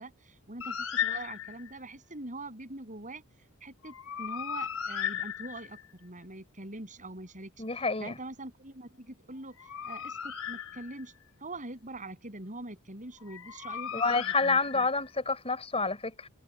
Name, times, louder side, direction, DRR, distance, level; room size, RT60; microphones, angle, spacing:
voice 1, 0.0-3.2 3.6-11.1 11.4-14.9, right 2 dB, 35° right, 7.4 m, -44 dB
Bird, 0.6-1.8 3.8-5.9 9.3-11.2 13.2-15.1, left 9 dB, 70° left, 6.0 m, -36 dB
voice 2, 7.6-8.2 13.9-16.3, left 3 dB, 30° left, 5.6 m, -28 dB
head